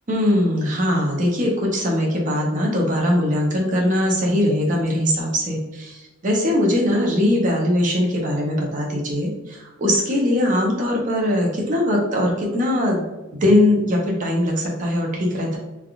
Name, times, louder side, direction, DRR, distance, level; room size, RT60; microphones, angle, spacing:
voice 1, 0.1-13.1 13.3-15.6, left 1 dB, 40° right, -1 dB, 0.7 m, -21 dB
3.4 x 2.3 x 2.3 m, 1.1 s
head